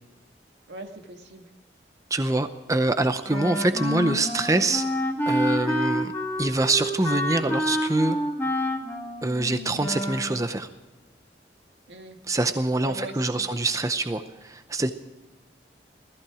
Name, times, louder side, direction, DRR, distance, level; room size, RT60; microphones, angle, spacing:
voice 1, 0.7-1.5 11.9-12.2 12.8-13.5, right 2 dB, 80° right, 4 dB, 1.8 m, -40 dB
voice 2, 2.1-4.9 5.3-6.1 6.4-8.2 9.2-10.7 12.3-14.9, right 2 dB, 20° right, 9 dB, 0.6 m, -25 dB
Wind instrument woodwind instrument, 3.3-10.4, left 1 dB, 15° left, 2.1 m, -28 dB
17.0 x 14.5 x 4.9 m, 1.1 s
head